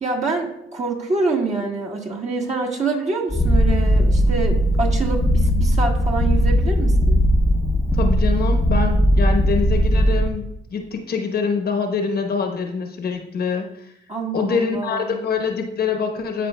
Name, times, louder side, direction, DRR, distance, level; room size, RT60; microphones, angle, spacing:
voice 1, 0.0-7.3 14.1-15.2, right 3 dB, 35° right, -1 dB, 1.5 m, -26 dB
Purr, 3.3-10.3, equal, ahead, 0.8 m, -18 dB
voice 2, 7.9-13.9 14.3-16.5, left 5 dB, 50° left, 4 dB, 1.0 m, -25 dB
12.5 x 4.7 x 2.2 m, 0.80 s
cardioid pair, 90°, 20 cm